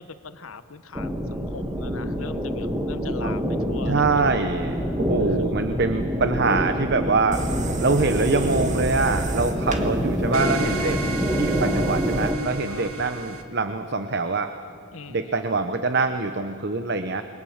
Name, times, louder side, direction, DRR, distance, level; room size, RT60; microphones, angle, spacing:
voice 1, 0.0-4.2 5.2-5.4 12.7-13.1 14.9-15.3, left 4 dB, 75° left, 11 dB, 1.0 m, -41 dB
sound 1, 0.9-12.4, equal, 10° right, 1.6 m, -26 dB
voice 2, 3.9-7.4 7.8-11.0 11.3-14.5 15.1-17.2, right 3 dB, 50° right, 9 dB, 0.9 m, -24 dB
sound 2, 7.3-12.3, right 1 dB, 35° right, 2.0 m, -32 dB
sound 3, 10.3-13.4, right 4 dB, 80° right, 2.2 m, -34 dB
28.5 x 22.5 x 7.3 m, 2.6 s
head